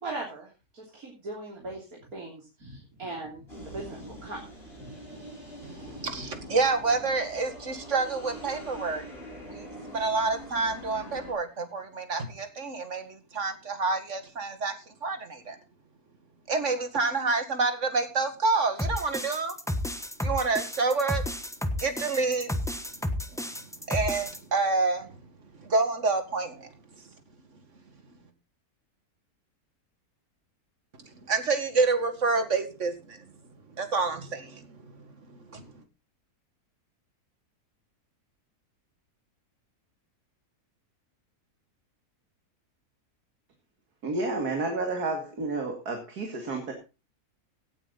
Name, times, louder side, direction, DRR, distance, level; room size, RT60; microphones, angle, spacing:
voice 1, 0.0-4.4 4.8-5.3 5.8-6.3, right 2 dB, 65° right, -1 dB, 3.8 m, -40 dB
sound 1, 3.5-11.3, equal, 40° left, 7.1 m, -44 dB
voice 2, 5.6-9.0 9.5-9.6 9.9-14.7 15.0-15.6 16.5-19.5 20.2-21.2 21.8-22.5 23.9-25.1 25.6-26.7 31.3-33.2 33.8-35.0 35.3-35.6, right 3 dB, 50° right, 8 dB, 2.3 m, -28 dB
sound 2, 18.8-24.4, left 1 dB, ahead, 1.0 m, -32 dB
voice 3, 44.0-46.7, right 3 dB, 80° right, 3 dB, 2.8 m, -30 dB
17.5 x 9.1 x 4.0 m, 0.31 s
omnidirectional pair, 1.6 m